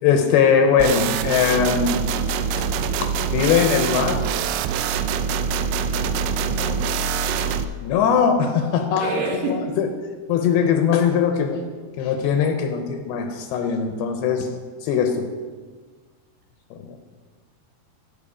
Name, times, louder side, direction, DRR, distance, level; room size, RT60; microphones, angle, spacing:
voice 1, 0.0-2.0 3.0-4.2 7.8-9.2 9.5-9.9 10.3-11.6 12.0-14.5 14.8-15.3 16.7-17.0, left 7 dB, 80° left, 6 dB, 2.6 m, -20 dB
sound 1, 0.8-7.6, right 6 dB, 85° right, 2.7 m, -24 dB
voice 2, 6.5-6.8 9.0-9.7, right 2 dB, 70° right, -1 dB, 3.4 m, -27 dB
16.0 x 6.2 x 5.0 m, 1.5 s
omnidirectional pair, 4.7 m